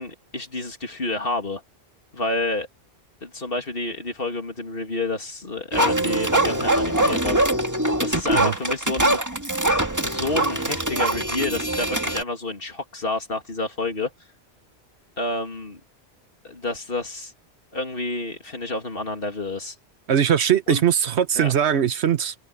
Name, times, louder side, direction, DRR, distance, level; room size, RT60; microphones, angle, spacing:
voice 1, 0.0-1.6 2.1-2.7 3.2-7.4 8.0-9.2 10.0-14.1 15.2-15.8 16.4-17.3 17.7-19.7 20.7-20.8 21.3-21.5, left 2 dB, 55° left, 2.9 m, -29 dB
Offensive requiem for a slimy reverend, 5.7-12.2, right 1 dB, 15° right, 2.0 m, -23 dB
voice 2, 20.1-22.3, right 9 dB, 75° right, 1.2 m, -20 dB
omnidirectional pair, 1.1 m